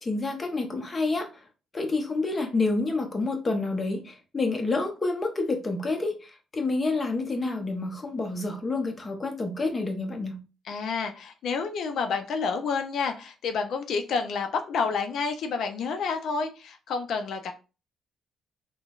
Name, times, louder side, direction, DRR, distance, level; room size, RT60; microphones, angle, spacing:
voice 1, 0.0-1.3 1.7-10.4, left 3 dB, 30° left, 0.7 m, -28 dB
voice 2, 10.7-17.5, left 5 dB, 70° left, 0.4 m, -29 dB
3.7 x 2.0 x 2.3 m
cardioid pair, 90°, 0 cm